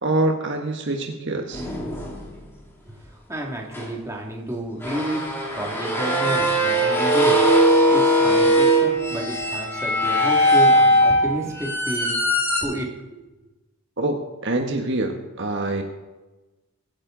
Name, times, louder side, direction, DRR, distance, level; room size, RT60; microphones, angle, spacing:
voice 1, 0.0-1.7 14.0-15.8, right 2 dB, 55° right, 4 dB, 1.3 m, -25 dB
sound 1, 1.5-2.3 3.7-3.9 4.8-12.6, equal, 10° left, 2.5 m, -19 dB
voice 2, 2.9-7.4 7.9-12.2 12.6-13.3, right 1 dB, 15° right, 0 dB, 2.3 m, -31 dB
23.0 x 9.6 x 3.9 m, 1.1 s
head